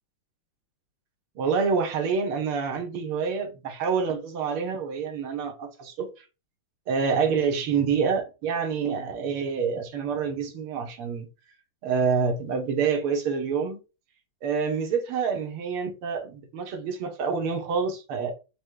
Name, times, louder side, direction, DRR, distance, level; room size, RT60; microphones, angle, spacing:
voice 1, 1.4-6.1 6.9-11.3 11.8-13.8 14.4-18.3, right 5 dB, 90° right, 1.9 m, -27 dB
5.1 x 2.2 x 4.6 m
omnidirectional pair, 2.3 m